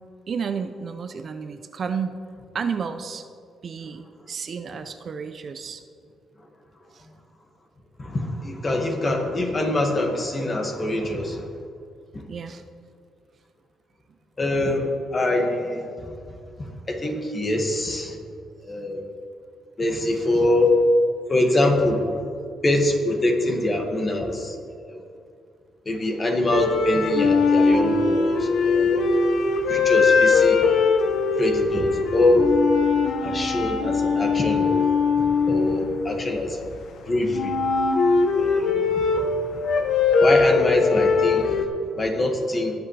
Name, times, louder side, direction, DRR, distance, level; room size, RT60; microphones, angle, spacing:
voice 1, 0.3-2.2 2.5-3.3 3.6-5.8 6.9-7.1 12.3-12.6, right 6 dB, 50° right, 9 dB, 0.6 m, -31 dB
voice 2, 8.0-11.5 12.1-12.2 14.4-16.1 16.6-18.2 18.6-19.0 19.8-20.8 21.3-22.2 22.6-25.0 25.9-29.0 29.7-30.7 31.4-32.5 33.2-34.8 35.2-36.6 37.1-37.6 38.3-39.3 40.2-41.6 42.0-42.7, left 1 dB, 30° left, 2 dB, 2.0 m, -24 dB
sound 1, 26.5-36.7 37.3-41.6, left 4 dB, 70° left, 1.0 m, -21 dB
19.5 x 8.3 x 3.4 m, 2.3 s
cardioid pair, 90°, 0 cm